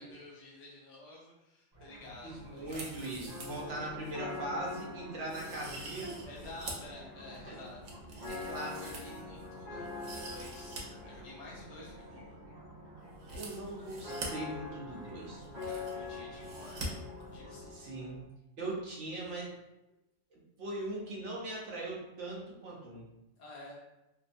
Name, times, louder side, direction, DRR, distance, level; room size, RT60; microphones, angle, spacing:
voice 1, 0.0-3.1 6.2-12.4 15.6-17.0 17.3-17.7 23.4-23.8, left 2 dB, 60° left, -5 dB, 0.4 m, -51 dB
sound 1, 1.7-17.7, right 1 dB, 35° right, 0.3 m, -52 dB
voice 2, 2.2-6.2 7.5-7.6 8.3-8.8 13.3-15.4 17.7-18.2 18.6-19.5 20.3-23.1, right 2 dB, 65° right, -3 dB, 1.0 m, -40 dB
sound 2, 2.6-3.7 4.0-4.1 4.7-4.8 5.3-6.9 7.3-9.5 9.8-10.8 11.1-11.2 13.2-14.3 15.1-15.2 15.4-16.1 16.4-16.9 17.2-17.3, right 2 dB, 85° right, 1.0 m, -45 dB
sound 3, 3.3-18.2, left 3 dB, 35° left, 1.1 m, -46 dB
2.8 x 2.2 x 2.5 m, 0.91 s
omnidirectional pair, 1.4 m